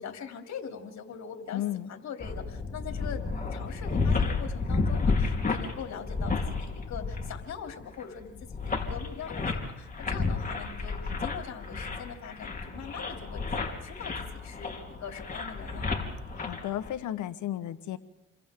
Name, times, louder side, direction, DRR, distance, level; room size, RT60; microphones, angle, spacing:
voice 1, 0.0-1.6 1.9-15.9, left 7 dB, 65° left, 4 dB, 3.3 m, -42 dB
voice 2, 1.5-1.9 16.3-18.0, left 12 dB, 80° left, 12 dB, 1.3 m, -33 dB
sound 1, 2.2-16.9, left 4 dB, 30° left, 3.6 m, -32 dB
29.5 x 24.0 x 3.8 m, 0.90 s
cardioid pair, 90°, 30 cm